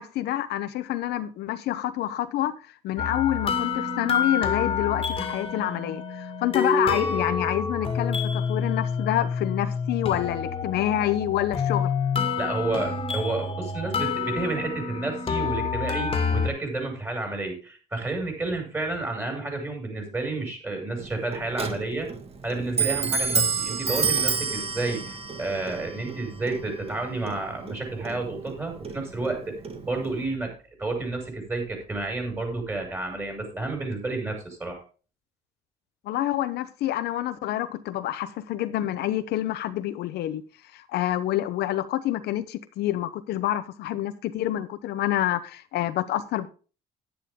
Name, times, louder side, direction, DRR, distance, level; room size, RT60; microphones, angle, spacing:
voice 1, 0.0-2.5 2.8-11.9 36.0-40.4 40.7-46.5, left 13 dB, 75° left, 0.9 m, -27 dB
sound 1, 3.0-16.5, left 5 dB, 30° left, 2.0 m, -28 dB
voice 2, 12.4-22.1 22.4-29.5 29.8-34.8, right 2 dB, 15° right, 5.9 m, -30 dB
Clock, 21.0-30.3, right 5 dB, 35° right, 1.8 m, -30 dB
11.0 x 10.5 x 3.7 m
cardioid pair, 110°, 17 cm